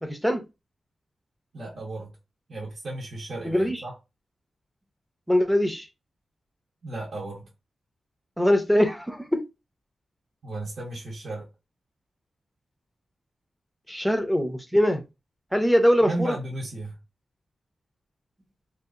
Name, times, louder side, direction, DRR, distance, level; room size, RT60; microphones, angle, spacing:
voice 1, 0.0-0.4 3.4-3.8 5.3-5.9 8.4-9.4 13.9-15.0 15.5-16.4, equal, ahead, 0.7 m, -22 dB
voice 2, 1.5-2.1 2.5-4.0 6.8-7.5 10.4-11.5 16.1-17.0, right 2 dB, 55° right, 0.9 m, -34 dB
2.8 x 2.5 x 3.7 m
wide cardioid pair, 140°, 0 cm